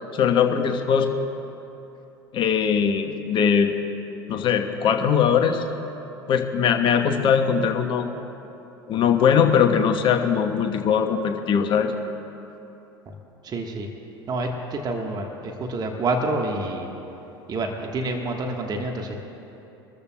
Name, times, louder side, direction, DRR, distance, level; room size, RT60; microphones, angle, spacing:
voice 1, 0.1-1.1 2.3-3.7 4.3-5.6 6.3-8.1 8.9-11.9, left 7 dB, 40° left, 5 dB, 1.1 m, -20 dB
voice 2, 13.4-13.9 14.3-16.9 17.5-19.2, right 2 dB, 30° right, 2 dB, 1.4 m, -28 dB
24.0 x 13.5 x 2.3 m, 2.9 s
figure-of-eight pair, 70°, 13 cm